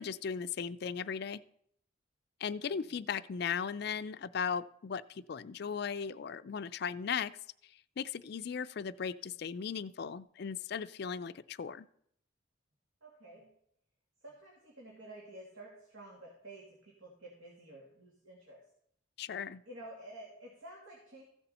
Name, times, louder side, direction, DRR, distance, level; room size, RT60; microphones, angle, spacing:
voice 1, 0.0-1.4 2.4-7.4 8.0-11.9 19.2-19.6, left 6 dB, 55° left, 14 dB, 0.4 m, -37 dB
voice 2, 2.6-3.0 13.0-13.5 14.2-18.6 19.7-21.2, right 1 dB, 85° right, -2 dB, 2.4 m, -51 dB
15.0 x 6.9 x 4.2 m, 0.69 s
head